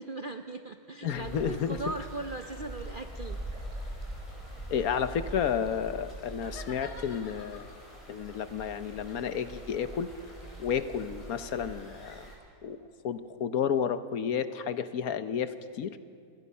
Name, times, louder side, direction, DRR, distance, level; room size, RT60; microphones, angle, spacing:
voice 1, 0.0-3.7, right 3 dB, 50° right, 7 dB, 0.6 m, -39 dB
voice 2, 1.0-1.8 4.7-7.7 8.1-10.1 10.6-12.3 12.6-12.8 13.0-16.0, left 8 dB, 65° left, 11 dB, 1.3 m, -31 dB
sound 1, 1.1-12.4, right 1 dB, 20° left, 4.7 m, -43 dB
sound 2, 6.3-8.0 8.9-12.0, left 4 dB, 85° left, 2.5 m, -50 dB
28.0 x 20.0 x 5.5 m, 2.3 s
omnidirectional pair, 1.7 m